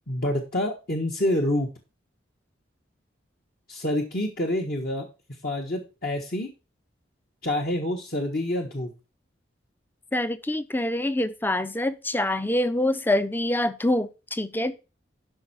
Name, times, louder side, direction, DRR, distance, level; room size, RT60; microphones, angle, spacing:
voice 1, 0.1-1.7 3.7-5.1 5.4-6.5 7.4-8.9, left 1 dB, 50° left, 1.3 m, -27 dB
voice 2, 10.1-14.8, left 1 dB, 10° left, 0.6 m, -25 dB
11.5 x 5.4 x 4.3 m
head